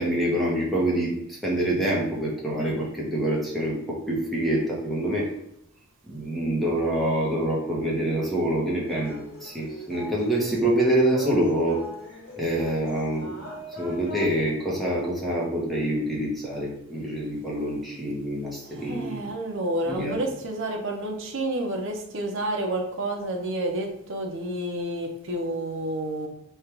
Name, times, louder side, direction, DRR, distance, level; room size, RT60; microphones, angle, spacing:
voice 1, 0.0-5.3 6.1-11.8 12.4-13.3 13.8-19.2 19.8-20.2, right 1 dB, ahead, -5 dB, 0.9 m, -26 dB
sound 1, 8.9-14.3, left 1 dB, 70° left, 0.8 m, -41 dB
voice 2, 18.7-26.3, right 1 dB, 60° right, 2 dB, 0.7 m, -30 dB
3.3 x 2.5 x 4.4 m, 0.75 s
head